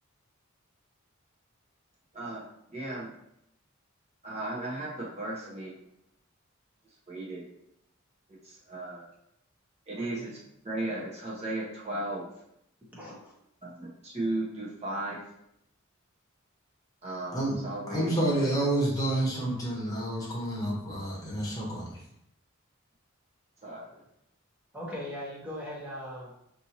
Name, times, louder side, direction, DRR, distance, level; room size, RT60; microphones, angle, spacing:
voice 1, 2.1-3.1 4.2-5.8 7.1-7.5 8.4-9.1 9.9-10.4 10.6-12.3 13.6-15.2 17.0-18.2 23.6-24.0, right 2 dB, 30° right, -5 dB, 0.9 m, -36 dB
voice 2, 10.0-10.3 12.9-13.3 13.6-13.7 24.7-26.3, left 1 dB, 5° right, -6 dB, 0.9 m, -40 dB
voice 3, 17.9-22.0, right 1 dB, 15° left, -5 dB, 1.2 m, -29 dB
5.2 x 2.7 x 2.9 m, 0.78 s
head